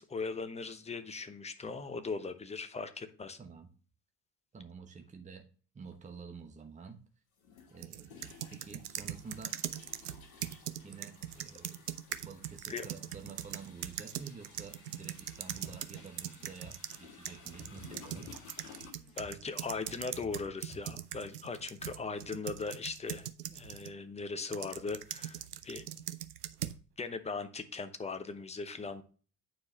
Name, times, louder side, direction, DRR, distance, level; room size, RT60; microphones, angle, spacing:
voice 1, 0.0-3.4 12.7-12.9 19.2-25.8 27.0-29.0, left 4 dB, 15° left, 10 dB, 0.9 m, -39 dB
voice 2, 3.4-3.7 4.5-5.5 5.7-7.0 7.7-9.6 10.8-11.8 12.2-18.3, right 5 dB, 15° right, 5 dB, 1.1 m, -49 dB
sound 1, 5.9-6.0 7.4-18.9, left 6 dB, 65° left, 1.7 m, -56 dB
sound 2, 7.8-17.0 17.3-23.9 24.5-26.8, right 11 dB, 80° right, 0.6 m, -41 dB
sound 3, 15.5-20.9, equal, 50° left, 2.6 m, -53 dB
9.2 x 4.7 x 3.2 m, 0.38 s
figure-of-eight pair, 60°, 45 cm